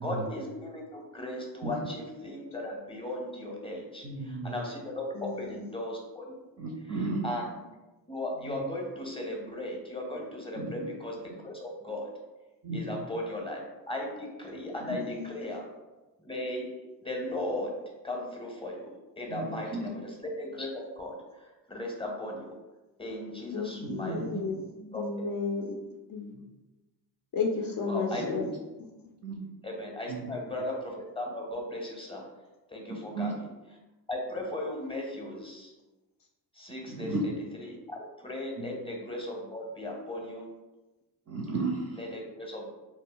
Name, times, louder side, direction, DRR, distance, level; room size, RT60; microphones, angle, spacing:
voice 1, 0.0-6.3 6.9-7.6 8.1-12.1 12.7-15.6 16.2-16.7 17.0-17.8 18.0-22.6 23.0-24.3 24.9-25.0 27.9-28.5 29.6-32.3 32.7-33.4 34.1-35.7 36.5-37.3 37.6-40.5 42.0-42.7, left 1 dB, 10° left, 0 dB, 0.7 m, -37 dB
voice 2, 4.0-4.5 6.6-7.2 10.5-10.8 12.6-13.0 14.8-15.0 19.3-19.9 23.8-24.5 24.8-24.9 26.3-26.4 28.4-28.5 29.2-29.4 30.1-30.3 33.1-33.3 36.9-37.2 38.6-38.7 41.3-42.0, right 3 dB, 35° right, 0 dB, 0.4 m, -34 dB
voice 3, 5.2-5.6 14.9-15.5 23.5-24.7 24.9-25.8 26.1-26.3 27.3-28.5, left 4 dB, 45° left, 1 dB, 0.5 m, -33 dB
2.1 x 2.0 x 3.6 m, 1.1 s
supercardioid pair, 50°, 50 cm